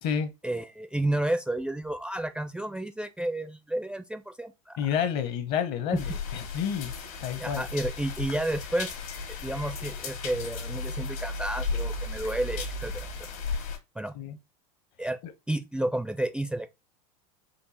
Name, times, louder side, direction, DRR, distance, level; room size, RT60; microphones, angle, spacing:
voice 1, 0.4-4.8 5.9-6.0 7.4-8.9 9.4-13.3 14.0-14.1 15.0-15.2 15.5-16.7, right 1 dB, 5° right, 0.4 m, -31 dB
voice 2, 4.8-6.9 7.2-7.6 14.1-14.4, left 8 dB, 55° left, 1.0 m, -29 dB
sound 1, 6.0-13.8, left 3 dB, 70° left, 1.7 m, -35 dB
4.5 x 2.7 x 4.2 m
hypercardioid pair, 95°, 19 cm